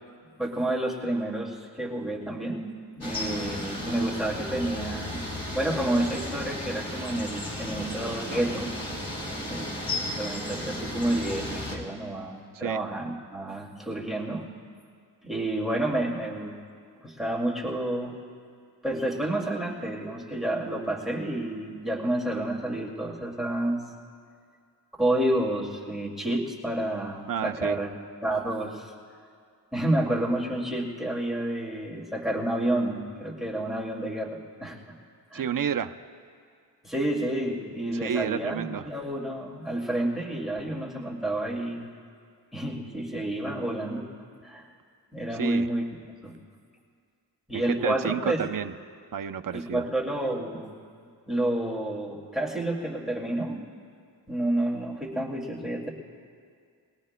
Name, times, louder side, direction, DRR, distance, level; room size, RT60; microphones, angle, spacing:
voice 1, 0.4-5.2 5.5-8.7 9.5-14.5 15.2-16.5 17.0-18.2 18.8-23.8 25.0-27.9 28.2-28.9 29.7-34.8 35.3-35.5 36.8-41.9 42.5-44.1 44.4-44.7 45.1-45.9 46.2-46.4 47.5-48.4 49.5-50.7 51.3-53.7 54.3-55.9, right 1 dB, ahead, -3 dB, 2.3 m, -29 dB
sound 1, 3.0-11.8, left 1 dB, 50° left, 4.0 m, -34 dB
voice 2, 27.3-27.8 35.3-35.9 38.0-38.9 45.4-45.7 47.5-48.7 49.1-49.8, right 8 dB, 50° right, 10 dB, 0.6 m, -30 dB
23.5 x 18.0 x 2.2 m, 2.2 s
cardioid pair, 45°, 45 cm